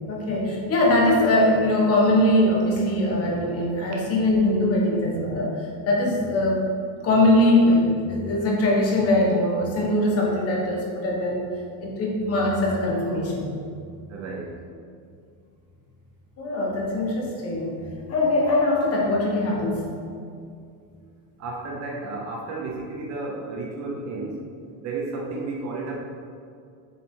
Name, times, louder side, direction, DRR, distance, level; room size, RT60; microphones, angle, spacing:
voice 1, 0.1-6.7 7.0-11.4 11.8-13.5 16.4-17.8 18.1-19.9, left 1 dB, 30° left, -2 dB, 1.3 m, -21 dB
voice 2, 14.1-14.6 21.4-24.4 24.8-26.0, right 3 dB, 35° right, -1 dB, 0.7 m, -32 dB
7.5 x 6.8 x 3.7 m, 2.3 s
cardioid pair, 180°, 48 cm